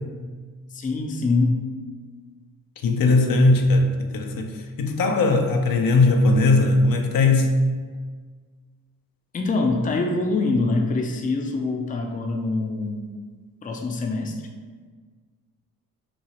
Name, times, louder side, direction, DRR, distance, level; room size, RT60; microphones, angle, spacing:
voice 1, 0.7-1.7 9.3-13.1 13.6-14.3, left 3 dB, 25° left, 2 dB, 0.4 m, -24 dB
voice 2, 2.8-7.5, left 2 dB, 70° left, 4 dB, 0.6 m, -19 dB
5.9 x 2.3 x 2.9 m, 1.5 s
cardioid pair, 105°, 35 cm